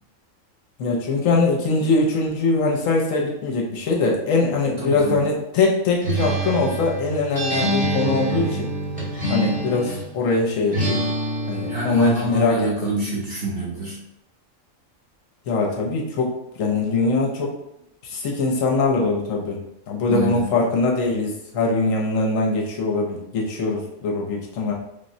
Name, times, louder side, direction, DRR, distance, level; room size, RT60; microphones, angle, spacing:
voice 1, 0.8-8.7 9.3-11.0 11.5-12.9 15.5-17.6 18.0-19.6 19.9-24.7, left 3 dB, 75° left, -1 dB, 1.0 m, -22 dB
voice 2, 4.8-5.2 11.7-14.0 20.1-20.4, right 2 dB, 40° right, -7 dB, 0.9 m, -26 dB
Acoustic guitar, 6.0-10.1 10.7-12.3, right 1 dB, 5° right, 0.9 m, -26 dB
3.6 x 2.0 x 2.6 m, 0.80 s
omnidirectional pair, 1.4 m